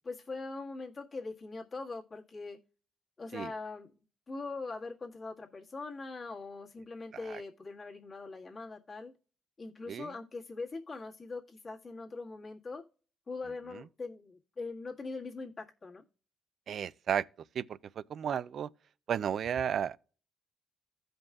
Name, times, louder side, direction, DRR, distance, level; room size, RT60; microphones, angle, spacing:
voice 1, 0.0-2.6 3.2-3.9 4.3-9.1 9.6-12.8 13.3-16.0, left 3 dB, 40° left, 1.7 m, -42 dB
voice 2, 16.7-17.3 17.5-18.7 19.1-20.0, right 8 dB, 60° right, 0.4 m, -33 dB
15.5 x 5.2 x 2.4 m
cardioid pair, 90°, 0 cm